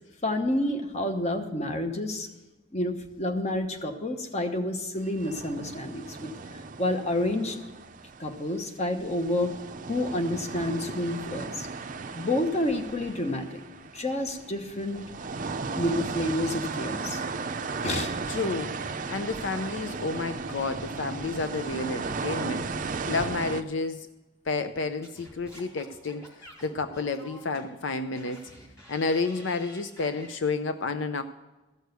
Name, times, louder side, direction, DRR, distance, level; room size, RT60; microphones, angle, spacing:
voice 1, 0.2-2.3 2.7-7.6 8.2-9.6 9.9-11.7 12.1-13.6 13.9-15.0 15.7-17.2 17.8-18.1, left 1 dB, 35° left, 5 dB, 1.1 m, -29 dB
sound 1, 5.2-8.7 9.0-23.6, right 4 dB, 40° right, 0.5 m, -36 dB
voice 2, 18.3-18.7 19.1-22.7 23.1-24.1 24.5-26.2 26.6-28.4 28.9-31.2, left 3 dB, 70° left, 9 dB, 0.5 m, -30 dB
Singing / Scratching (performance technique), 25.0-30.3, equal, 15° left, 3.0 m, -49 dB
14.5 x 6.5 x 8.1 m, 1.1 s
head